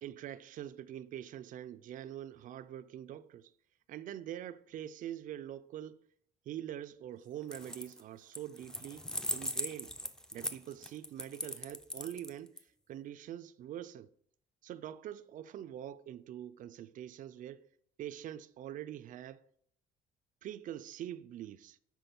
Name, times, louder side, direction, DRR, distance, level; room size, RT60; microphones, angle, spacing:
voice 1, 0.0-3.5 3.9-6.1 6.5-9.0 9.3-9.9 10.3-12.5 12.9-14.1 14.6-17.7 18.0-19.4 20.4-21.8, right 11 dB, 50° right, 0.4 m, -44 dB
sound 1, 7.4-8.0 8.3-12.6, left 1 dB, 5° left, 0.5 m, -39 dB
6.0 x 4.6 x 5.2 m
cardioid pair, 110°, 17 cm